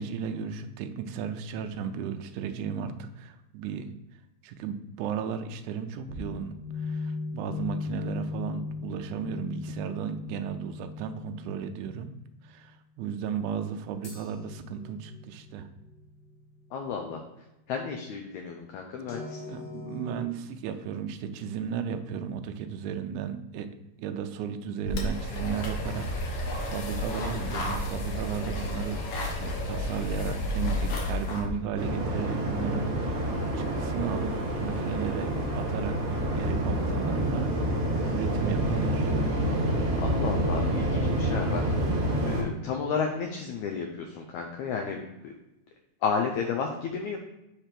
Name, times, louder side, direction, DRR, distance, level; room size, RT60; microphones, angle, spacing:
voice 1, 0.0-3.9 4.4-12.1 12.4-15.7 19.5-23.7 24.0-34.3 34.6-37.5 38.1-39.1, right 7 dB, 80° right, 7 dB, 1.8 m, -35 dB
sound 1, 6.1-12.3 14.0-16.8 19.1-20.2, left 4 dB, 50° left, 1.7 m, -38 dB
voice 2, 16.7-17.2 17.7-19.6 40.0-41.6 42.2-45.0 45.2-45.4 46.0-47.2, left 6 dB, 85° left, 2 dB, 1.6 m, -32 dB
sound 2, 24.8-31.5, left 1 dB, 70° left, 1.4 m, -31 dB
Waves surf, 31.8-42.4, right 1 dB, 50° right, 0.9 m, -28 dB
7.2 x 3.4 x 5.8 m, 0.92 s
omnidirectional pair, 4.2 m